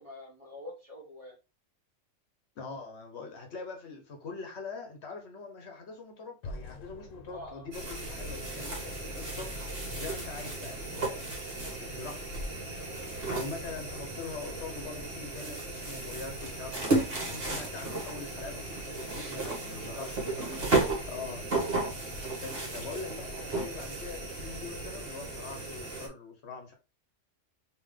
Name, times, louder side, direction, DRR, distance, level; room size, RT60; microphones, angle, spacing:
voice 1, 0.0-1.4 7.3-7.7 19.4-21.2 22.7-22.9, left 1 dB, 30° right, 1.2 m, -48 dB
voice 2, 2.6-9.5 10.0-12.2 13.3-20.4 21.1-21.4 22.4-26.7, left 4 dB, 60° left, 1.0 m, -43 dB
sound 1, 6.4-9.4, left 2 dB, 85° left, 1.1 m, -47 dB
sound 2, 7.7-26.1, right 2 dB, 50° right, 1.5 m, -34 dB
3.7 x 2.9 x 3.2 m
omnidirectional pair, 1.3 m